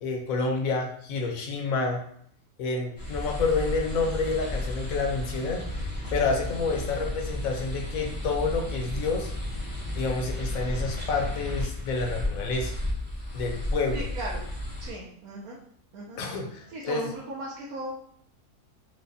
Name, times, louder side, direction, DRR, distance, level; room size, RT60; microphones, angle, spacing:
voice 1, 0.0-2.0 2.6-9.3 10.0-12.8 13.3-14.1 16.2-17.1, left 3 dB, 70° left, 2 dB, 0.9 m, -29 dB
sound 1, 3.0-14.9, left 1 dB, 20° left, 0.6 m, -33 dB
voice 2, 13.9-14.4 14.8-15.6 15.9-16.2 16.7-18.0, right 1 dB, 75° right, -3 dB, 1.0 m, -36 dB
4.7 x 2.1 x 2.6 m, 0.65 s
omnidirectional pair, 1.6 m